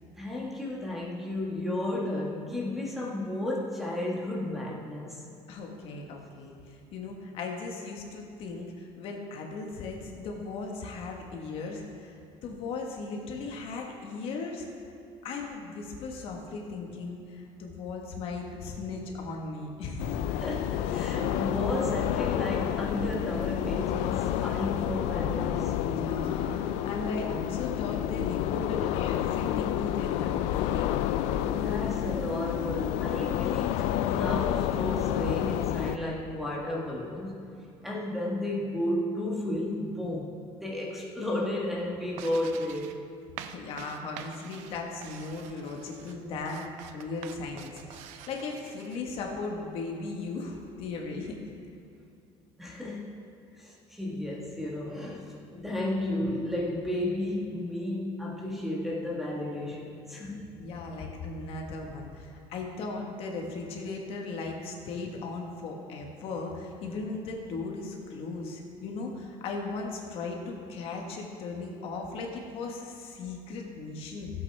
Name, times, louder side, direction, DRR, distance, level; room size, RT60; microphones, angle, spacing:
voice 1, 0.2-5.3 20.3-25.7 31.4-37.3 37.8-43.0 52.6-53.1 53.5-60.4, left 1 dB, ahead, -3 dB, 1.4 m, -33 dB
voice 2, 5.5-14.7 15.2-20.2 20.9-21.2 25.8-31.0 43.4-51.3 60.6-74.3, left 3 dB, 55° left, 0 dB, 1.4 m, -37 dB
sound 1, 20.0-36.0, left 11 dB, 85° left, 0.4 m, -29 dB
sound 2, 42.1-49.0, right 9 dB, 85° right, 0.6 m, -47 dB
15.5 x 8.2 x 3.5 m, 2.6 s
cardioid pair, 160°, 11 cm